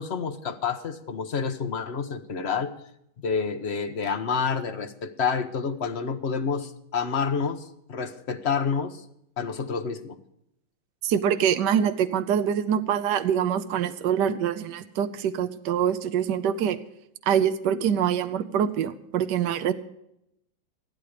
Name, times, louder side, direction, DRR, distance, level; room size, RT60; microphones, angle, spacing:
voice 1, 0.0-2.7 3.2-9.0 9.4-10.2, left 5 dB, 40° left, 7 dB, 1.1 m, -28 dB
voice 2, 11.0-16.8 17.3-19.7, right 8 dB, 70° right, 10 dB, 1.4 m, -25 dB
14.5 x 12.5 x 5.0 m, 0.78 s
omnidirectional pair, 2.0 m